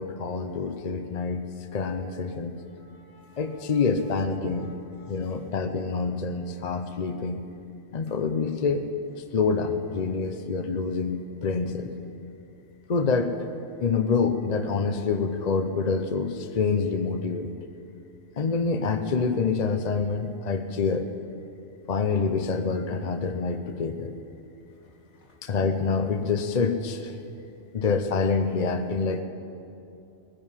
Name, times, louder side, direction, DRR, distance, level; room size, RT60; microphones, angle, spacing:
voice 1, 0.0-2.6 3.4-4.7 5.1-7.4 7.9-8.9 9.3-11.9 12.9-13.3 13.8-17.5 18.4-21.1 21.9-24.1 25.4-27.1 27.7-29.2, left 4 dB, 40° left, 7 dB, 0.7 m, -26 dB
voice 2, 2.7-3.8 4.5-5.5 25.1-25.4, left 3 dB, 70° left, -2 dB, 2.6 m, -56 dB
21.0 x 10.0 x 5.7 m, 2.7 s
omnidirectional pair, 1.2 m